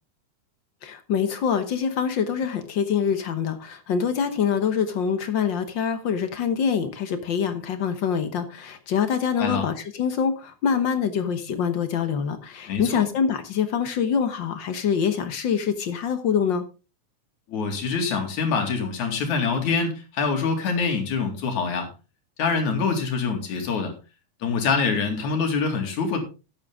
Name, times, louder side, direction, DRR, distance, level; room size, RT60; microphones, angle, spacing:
voice 1, 0.8-16.6, left 7 dB, 55° left, 9 dB, 1.3 m, -25 dB
voice 2, 12.7-13.0 17.5-21.9 22.4-23.9 24.4-26.2, left 5 dB, 80° left, 5 dB, 3.7 m, -25 dB
12.0 x 9.6 x 3.6 m, 0.32 s
omnidirectional pair, 3.3 m